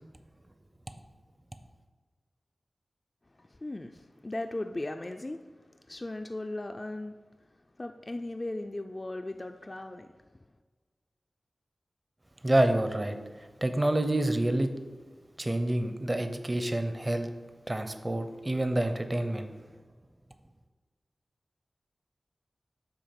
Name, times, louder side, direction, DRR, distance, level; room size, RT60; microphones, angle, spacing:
voice 1, 3.4-5.4 5.9-7.2 7.8-10.1, left 2 dB, 35° left, 5 dB, 0.4 m, -37 dB
voice 2, 12.4-13.2 13.6-14.7 15.4-17.3 17.7-19.5, right 1 dB, 30° right, 7 dB, 0.6 m, -27 dB
8.5 x 2.9 x 5.8 m, 1.4 s
cardioid pair, 50°, 0 cm